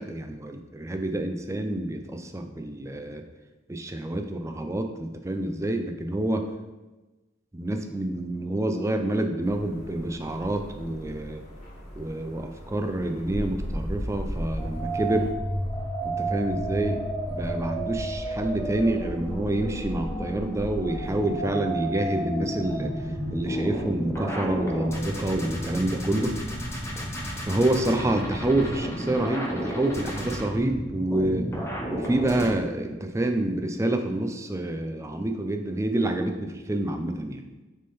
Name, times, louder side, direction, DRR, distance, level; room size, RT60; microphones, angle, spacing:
voice 1, 0.0-3.2 3.7-6.5 7.5-11.4 11.9-15.3 16.0-17.0 17.3-22.9 23.3-26.4 27.4-31.5 31.9-37.4, right 1 dB, 15° right, 5 dB, 0.4 m, -27 dB
sound 1, 9.4-15.3, equal, 40° left, 1.6 m, -45 dB
sound 2, 13.2-32.5, right 1 dB, 15° left, 0.9 m, -32 dB
6.4 x 3.7 x 4.2 m, 1.1 s
head